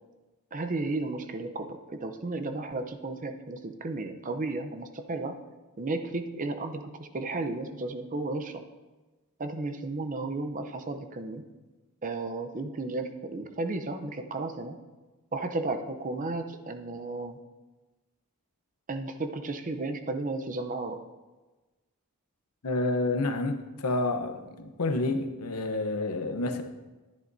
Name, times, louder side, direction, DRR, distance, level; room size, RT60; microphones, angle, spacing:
voice 1, 0.5-5.3 5.8-8.6 9.4-11.4 12.0-14.8 15.3-17.4 18.9-21.0, right 2 dB, 35° right, 7 dB, 0.6 m, -33 dB
voice 2, 22.6-26.6, left 2 dB, 80° left, 7 dB, 0.8 m, -29 dB
11.0 x 10.0 x 2.7 m, 1.2 s
head